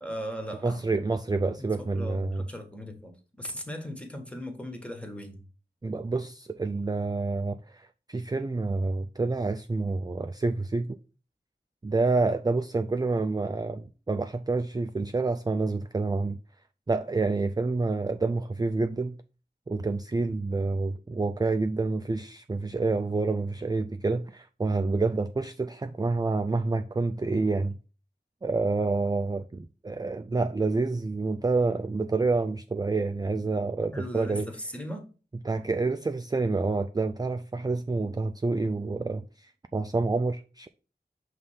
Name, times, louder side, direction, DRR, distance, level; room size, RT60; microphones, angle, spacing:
voice 1, 0.0-0.8 1.6-1.7 1.9-3.1 3.4-5.4 33.9-35.0, equal, 5° left, 1.5 m, -38 dB
voice 2, 0.6-2.4 5.8-11.0 11.8-16.4 16.9-19.2 19.7-27.7 28.4-34.5 35.4-40.7, right 3 dB, 20° right, 0.3 m, -28 dB
5.5 x 3.3 x 5.6 m
wide cardioid pair, 45°, 18 cm